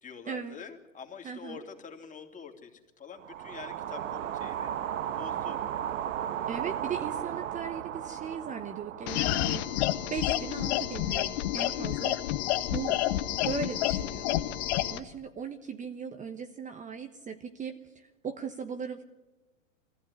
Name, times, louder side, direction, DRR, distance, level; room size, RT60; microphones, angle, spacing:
voice 1, 0.0-4.7 5.1-5.6 11.5-11.9, left 6 dB, 20° left, 3 dB, 3.0 m, -46 dB
voice 2, 1.2-1.6 6.5-9.7 10.1-13.0 13.3-19.0, right 6 dB, 20° right, 7 dB, 1.2 m, -38 dB
sound 1, 3.2-11.4, right 10 dB, 70° right, 1.2 m, -36 dB
sound 2, 9.1-15.0, left 13 dB, 55° left, 1.5 m, -29 dB
23.5 x 15.5 x 9.8 m, 1.1 s
hypercardioid pair, 115°, 39 cm